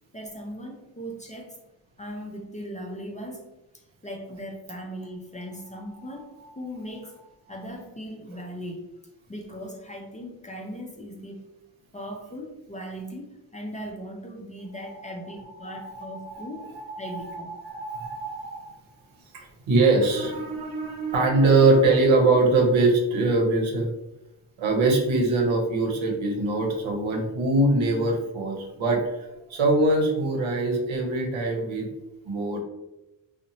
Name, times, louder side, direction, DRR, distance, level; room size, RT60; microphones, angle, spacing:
voice 1, 0.1-1.6 2.0-3.5 3.7-6.3 6.6-7.1 7.5-8.9 9.3-11.5 11.9-17.5, equal, 15° left, 1 dB, 0.5 m, -38 dB
voice 2, 6.0-6.5 8.3-8.4 15.6-18.7 19.3-23.9 24.6-31.9 32.2-32.6, right 2 dB, 70° right, 1 dB, 0.8 m, -23 dB
2.7 x 2.1 x 2.7 m, 0.95 s
supercardioid pair, 45°, 48 cm